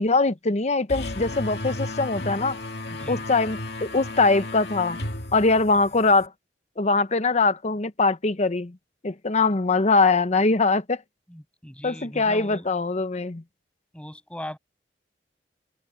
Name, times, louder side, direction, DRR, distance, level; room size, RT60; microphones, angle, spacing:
voice 1, 0.0-2.6 3.1-5.0 5.3-6.3 6.8-8.8 9.0-11.0 11.8-13.4, left 3 dB, 40° left, 0.9 m, -22 dB
sound 1, 0.9-6.3, left 1 dB, 70° left, 2.3 m, -34 dB
voice 2, 2.9-3.3 11.3-12.7 13.9-14.6, left 1 dB, 5° left, 7.1 m, -39 dB
head